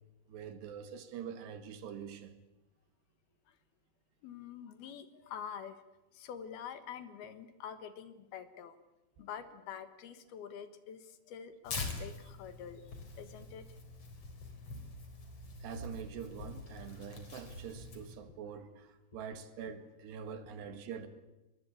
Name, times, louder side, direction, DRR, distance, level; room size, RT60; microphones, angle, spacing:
voice 1, 0.3-2.3 15.6-21.1, right 7 dB, 80° right, 4.0 m, -45 dB
voice 2, 4.2-5.8 6.1-8.8 9.2-12.9 13.2-13.7, left 8 dB, 70° left, 3.1 m, -46 dB
Tearing, 11.6-18.1, left 3 dB, 35° left, 4.8 m, -44 dB
25.5 x 22.5 x 8.5 m
omnidirectional pair, 4.9 m